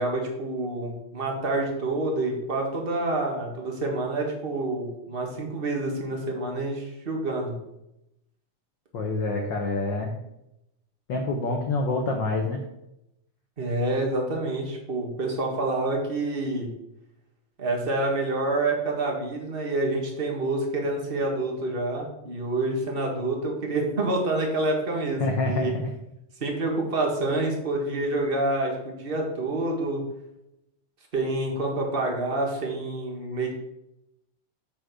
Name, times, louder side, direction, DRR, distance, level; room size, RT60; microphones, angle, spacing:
voice 1, 0.0-7.6 13.6-16.7 17.6-25.7 26.4-30.0 31.1-33.6, right 2 dB, 30° right, 0 dB, 1.2 m, -27 dB
voice 2, 8.9-10.2 11.1-12.6 25.2-25.9, left 2 dB, 75° left, 3 dB, 1.0 m, -27 dB
6.9 x 5.5 x 6.2 m, 0.86 s
omnidirectional pair, 3.4 m